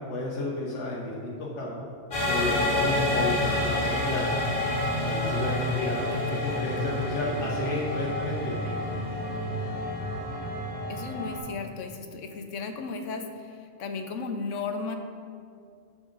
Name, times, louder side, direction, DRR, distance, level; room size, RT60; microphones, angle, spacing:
voice 1, 0.1-1.7 2.3-4.3 5.0-8.8, left 2 dB, 75° left, -4 dB, 1.3 m, -32 dB
sound 1, 2.1-11.4, left 1 dB, 45° left, 2.3 m, -28 dB
voice 2, 10.9-15.0, left 4 dB, 90° left, 5 dB, 1.1 m, -35 dB
9.7 x 6.3 x 3.9 m, 2.4 s
omnidirectional pair, 1.3 m